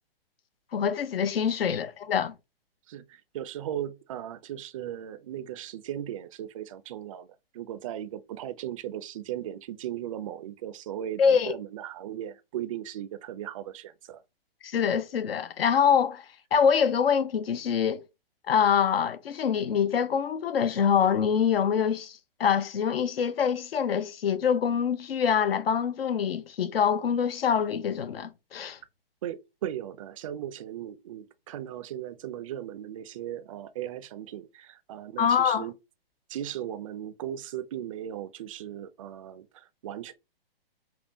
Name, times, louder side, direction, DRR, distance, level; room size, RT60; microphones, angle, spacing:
voice 1, 0.7-2.3 11.2-11.5 14.6-16.2 16.5-18.0 18.5-28.8 35.2-35.6, left 7 dB, 75° left, 0.8 m, -25 dB
voice 2, 1.5-1.8 2.9-14.2 29.2-35.7 36.3-40.1, right 11 dB, 35° right, 0.4 m, -37 dB
5.4 x 2.2 x 2.7 m
hypercardioid pair, 145°, 30 cm